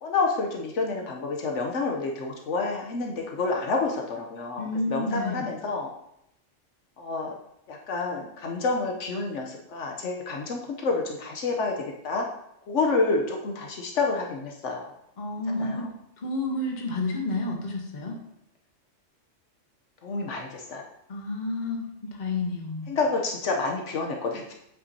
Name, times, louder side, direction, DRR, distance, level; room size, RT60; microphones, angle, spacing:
voice 1, 0.0-5.9 7.0-7.3 7.7-12.3 12.7-14.9 15.5-15.9 20.0-20.8 22.9-24.5, left 3 dB, 75° left, 1 dB, 1.1 m, -29 dB
voice 2, 4.6-5.4 15.2-15.9 16.2-18.2 21.1-23.0, left 2 dB, 40° left, 1 dB, 1.1 m, -30 dB
8.0 x 6.0 x 2.7 m, 0.79 s
omnidirectional pair, 1.3 m